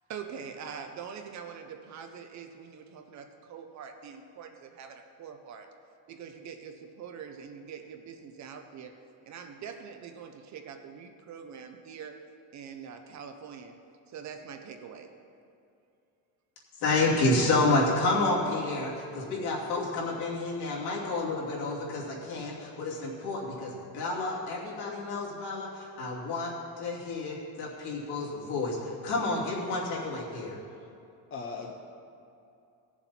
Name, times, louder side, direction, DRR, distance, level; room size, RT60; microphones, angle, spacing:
voice 1, 0.1-5.7 6.1-8.9 9.3-12.1 12.5-13.7 14.1-15.1, right 7 dB, 40° right, 5 dB, 0.7 m, -44 dB
voice 2, 16.8-26.5 26.8-30.6, left 2 dB, 60° left, -5 dB, 2.9 m, -29 dB
voice 3, 31.3-31.7, left 4 dB, 30° left, 1 dB, 0.6 m, -39 dB
17.5 x 7.2 x 4.3 m, 2.6 s
cardioid pair, 180°, 45 cm